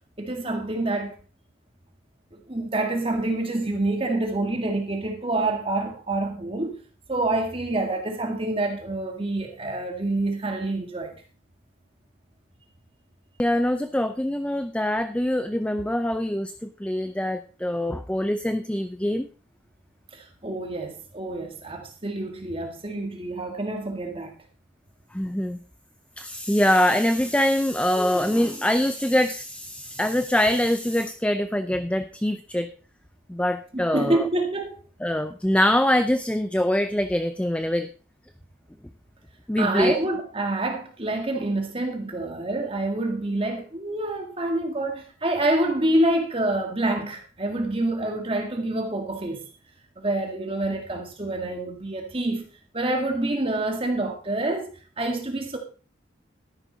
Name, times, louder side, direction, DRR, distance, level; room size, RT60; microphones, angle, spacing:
voice 1, 0.2-1.1 2.3-6.8 7.1-11.2 20.1-24.3 33.7-34.7 39.6-49.4 50.0-52.4 52.7-54.7 55.0-55.6, right 2 dB, 30° right, 1.8 m, -27 dB
voice 2, 13.4-19.3 25.1-25.6 26.2-32.7 33.3-34.2 35.0-37.9 39.5-39.9, left 1 dB, 5° left, 0.5 m, -24 dB
13.0 x 11.0 x 4.0 m
head